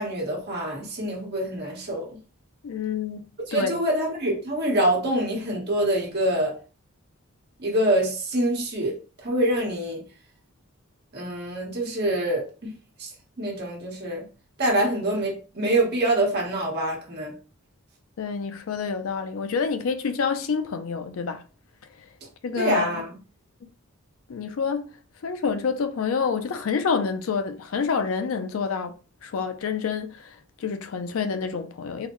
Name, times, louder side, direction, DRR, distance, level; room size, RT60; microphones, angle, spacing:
voice 1, 0.0-2.2 3.5-6.6 7.6-9.0 9.2-10.0 11.1-12.5 13.0-13.1 13.4-14.3 14.6-17.3 22.6-23.1, right 1 dB, 50° right, 1.2 m, -25 dB
voice 2, 2.6-3.8 18.2-21.4 22.4-23.0 24.3-24.9 25.2-28.9 29.2-32.1, left 5 dB, 70° left, 0.4 m, -28 dB
3.9 x 2.1 x 3.0 m
head